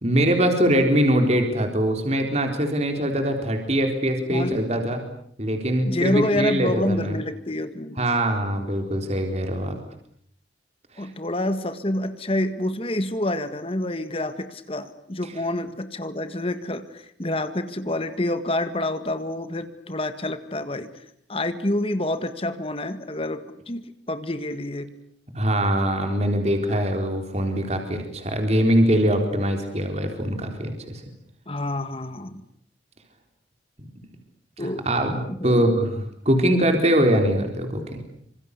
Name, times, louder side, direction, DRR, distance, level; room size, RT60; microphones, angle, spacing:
voice 1, 0.0-5.0 5.4-7.2 8.0-9.8 11.0-11.1 25.3-31.0 34.6-38.0, equal, 35° right, 5 dB, 4.0 m, -22 dB
voice 2, 4.3-4.6 5.8-8.0 9.6-9.9 11.0-20.9 21.3-24.9 31.5-32.4 34.6-34.9 35.3-35.6, left 1 dB, 30° left, 10 dB, 1.7 m, -28 dB
27.5 x 26.0 x 8.4 m, 0.67 s
head